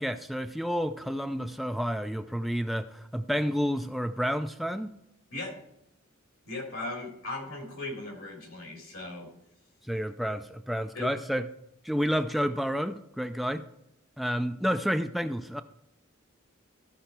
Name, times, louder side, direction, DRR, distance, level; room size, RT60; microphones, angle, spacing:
voice 1, 0.0-4.9 9.8-11.5 11.8-13.6 14.2-15.6, equal, ahead, 8 dB, 0.3 m, -30 dB
voice 2, 6.4-9.3 10.9-11.1, left 2 dB, 75° left, 1 dB, 3.4 m, -38 dB
13.5 x 5.6 x 4.4 m, 0.80 s
head